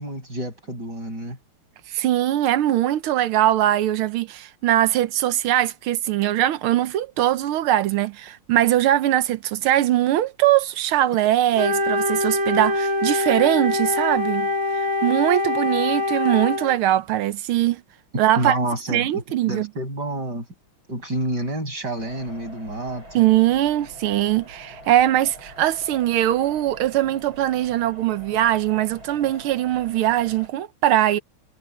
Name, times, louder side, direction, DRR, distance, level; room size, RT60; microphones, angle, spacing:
voice 1, 0.0-1.4 18.3-20.4 20.9-23.2, right 1 dB, 50° right, 8.4 m, -29 dB
voice 2, 1.9-14.5 15.0-17.8 18.2-18.6 18.9-19.7 23.1-31.2, right 13 dB, 90° right, 1.7 m, -21 dB
Wind instrument woodwind instrument, 11.5-16.7, left 2 dB, 10° right, 2.7 m, -24 dB
sound 1, 22.0-30.5, equal, 70° right, 8.9 m, -44 dB
omnidirectional pair, 2.3 m